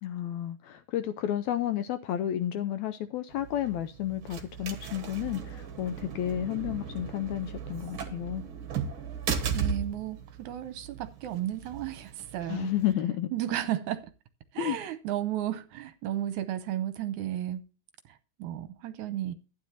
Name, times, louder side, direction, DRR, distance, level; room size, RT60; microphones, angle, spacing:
voice 1, 0.0-8.4 12.5-13.3 14.6-14.8, left 11 dB, 80° left, 1.7 m, -31 dB
sound 1, 3.3-12.9, right 6 dB, 55° right, 1.5 m, -37 dB
voice 2, 9.5-14.1 14.5-17.6 18.4-19.3, right 12 dB, 75° right, 2.0 m, -34 dB
12.0 x 9.6 x 2.8 m
omnidirectional pair, 3.7 m